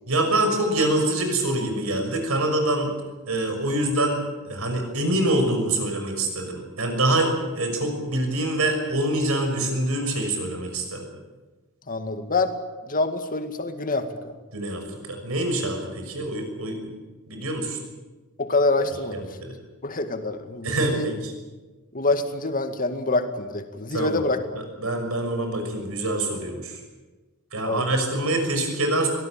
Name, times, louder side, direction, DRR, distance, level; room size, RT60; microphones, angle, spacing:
voice 1, 0.1-2.9 3.3-4.2 4.4-11.0 14.5-14.8 15.1-16.9 17.3-17.8 19.1-19.5 20.6-21.3 23.9-24.2 24.8-26.8 27.5-29.1, right 1 dB, 70° right, 5 dB, 6.1 m, -25 dB
voice 2, 11.9-12.5 12.9-14.3 18.4-19.4 19.8-21.1 21.9-24.4 27.7-27.9, left 2 dB, 40° left, 7 dB, 2.1 m, -26 dB
23.5 x 18.5 x 9.0 m, 1.3 s
head